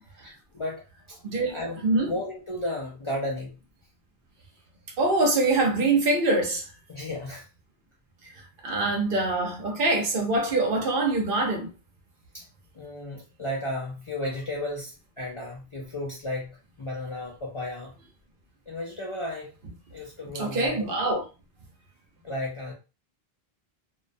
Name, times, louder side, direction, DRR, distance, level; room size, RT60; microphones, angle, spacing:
voice 1, 0.2-0.8 1.5-3.6 6.9-7.5 12.3-12.4 12.8-17.9 18.7-19.5 19.9-20.8 22.2-22.7, left 1 dB, 45° left, 0.4 m, -34 dB
voice 2, 1.2-2.1 5.0-6.6 8.6-11.7 20.3-21.2, right 2 dB, 60° right, 0.8 m, -24 dB
2.5 x 2.1 x 2.5 m
omnidirectional pair, 1.0 m